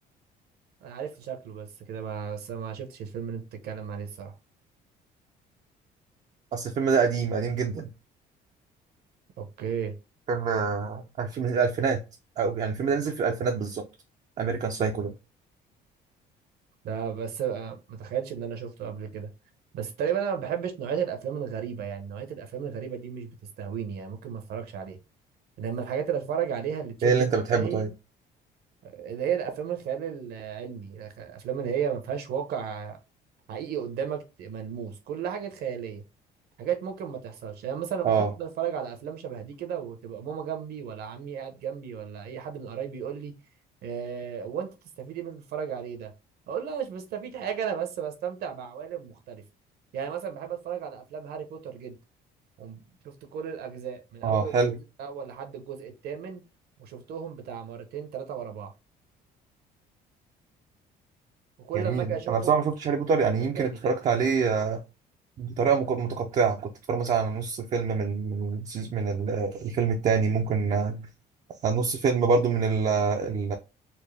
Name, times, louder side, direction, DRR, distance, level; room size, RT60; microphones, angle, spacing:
voice 1, 0.8-4.3 9.4-9.9 16.8-19.3 19.7-23.3 23.6-25.0 25.6-27.9 28.8-33.0 33.5-36.0 36.6-43.3 43.8-44.7 45.0-46.1 46.5-49.4 49.9-52.0 52.6-54.5 55.0-56.4 56.8-58.7 61.6-62.7 63.6-63.9, right 8 dB, 70° right, 1.0 m, -34 dB
voice 2, 6.5-7.9 10.3-12.0 12.4-13.8 14.4-15.1 27.0-27.9 38.0-38.3 54.2-54.8 61.7-64.8 65.4-71.1 71.6-73.5, right 5 dB, 45° right, 0.6 m, -26 dB
4.4 x 2.2 x 3.3 m
cardioid pair, 110°, 17 cm